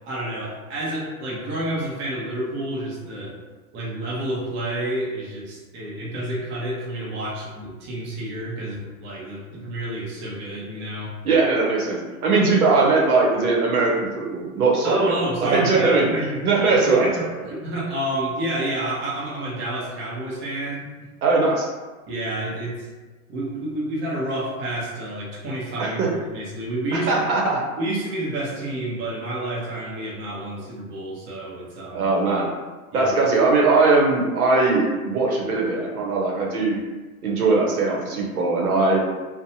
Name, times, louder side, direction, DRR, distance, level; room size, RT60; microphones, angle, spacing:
voice 1, 0.1-3.4 3.7-11.2 14.8-16.4 16.7-20.9 22.1-22.9 23.3-27.2 27.8-32.1 32.9-33.1, right 1 dB, 25° right, -5 dB, 0.7 m, -29 dB
voice 2, 11.2-15.0 15.4-17.1 21.2-21.7 25.8-26.1 26.9-27.6 31.9-32.5 32.9-36.8 37.2-39.0, right 3 dB, 80° right, -2 dB, 0.8 m, -20 dB
2.5 x 2.2 x 2.7 m, 1.3 s
hypercardioid pair, 115°, 44 cm